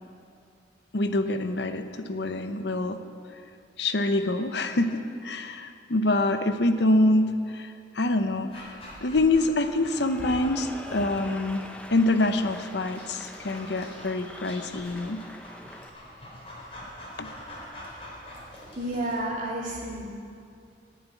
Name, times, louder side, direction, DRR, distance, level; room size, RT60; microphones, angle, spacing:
voice 1, 0.9-3.0 3.8-8.7 9.0-11.6 11.9-15.2 17.2-17.3, left 2 dB, 65° left, 8 dB, 0.8 m, -25 dB
Dog, 8.5-19.2, equal, 30° left, 4.1 m, -45 dB
Cheering / Applause, 9.6-15.9, equal, 5° left, 0.8 m, -43 dB
voice 2, 18.7-20.0, right 1 dB, 45° right, -4 dB, 3.4 m, -30 dB
17.5 x 7.5 x 9.3 m, 2.4 s
head